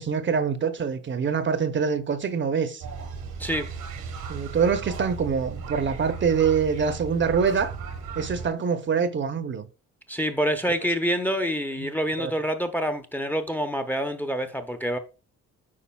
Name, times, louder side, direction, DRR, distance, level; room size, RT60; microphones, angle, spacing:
voice 1, 0.0-2.8 4.3-7.7 8.2-9.7 12.2-12.3, right 6 dB, 40° right, 0.7 m, -25 dB
sound 1, 2.8-8.5, right 5 dB, 90° right, 1.5 m, -36 dB
voice 2, 10.1-15.0, equal, 5° left, 0.7 m, -27 dB
8.5 x 5.0 x 2.3 m
cardioid pair, 90°, 30 cm